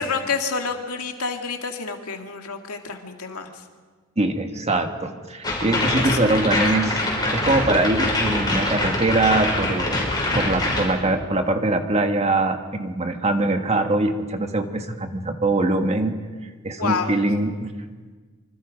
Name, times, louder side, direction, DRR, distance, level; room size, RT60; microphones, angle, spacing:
voice 1, 0.0-3.6 5.7-6.5 16.8-17.2, left 5 dB, 90° left, 4 dB, 2.3 m, -29 dB
voice 2, 4.2-7.0 7.3-10.1 10.3-16.1 16.6-17.7, right 2 dB, 30° right, 6 dB, 1.6 m, -22 dB
sound 1, 5.4-10.9, left 1 dB, 20° left, 5.3 m, -24 dB
26.0 x 25.5 x 5.3 m, 1.5 s
head